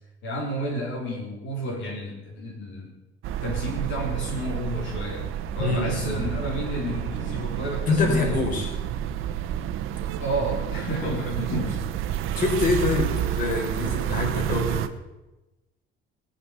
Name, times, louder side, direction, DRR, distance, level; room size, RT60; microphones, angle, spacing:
voice 1, 0.2-2.9 3.4-8.6 10.2-11.8, right 1 dB, 65° left, -2 dB, 3.9 m, -31 dB
sound 1, 3.2-14.9, right 10 dB, 80° right, 1.1 m, -30 dB
voice 2, 5.6-6.3 7.9-8.7 12.4-14.8, left 3 dB, 40° left, 0 dB, 4.4 m, -25 dB
19.0 x 7.3 x 8.3 m, 1.0 s
cardioid pair, 150°, 21 cm